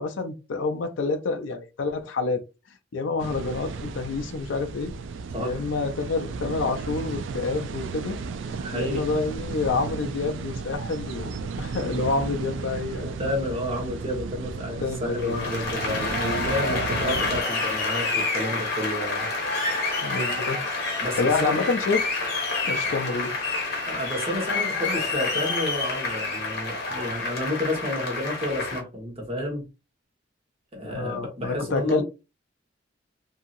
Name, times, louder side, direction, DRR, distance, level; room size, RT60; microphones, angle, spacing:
voice 1, 0.0-2.4 2.9-4.9 5.4-8.2 8.7-13.1 14.8-15.5 20.0-20.6 21.2-22.0 22.7-23.3 30.8-32.0, left 4 dB, 80° left, 0.5 m, -28 dB
sound 1, 3.2-17.4, right 4 dB, 80° right, 0.3 m, -34 dB
voice 2, 8.4-9.1 13.0-19.3 21.0-21.6 23.9-29.6 30.7-32.0, left 1 dB, 35° right, 1.2 m, -30 dB
Applause, 15.2-28.8, left 3 dB, 55° left, 1.0 m, -28 dB
2.8 x 2.7 x 2.5 m
head